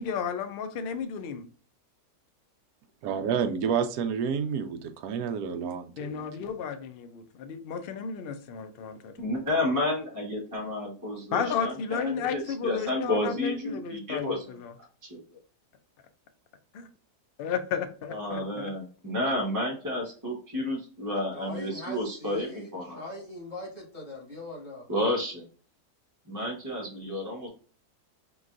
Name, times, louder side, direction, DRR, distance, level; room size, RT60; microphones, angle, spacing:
voice 1, 0.0-1.5 6.0-9.1 11.3-14.7 16.7-16.9 17.4-18.7, left 6 dB, 75° left, 0.5 m, -33 dB
voice 2, 3.0-6.3, right 7 dB, 75° right, 1.0 m, -29 dB
voice 3, 9.2-14.4 15.1-15.2 18.1-23.1 24.9-25.4 26.3-27.5, left 1 dB, 15° right, 1.0 m, -31 dB
voice 4, 21.3-24.9, left 1 dB, 50° left, 2.2 m, -41 dB
5.3 x 3.0 x 2.5 m
omnidirectional pair, 1.7 m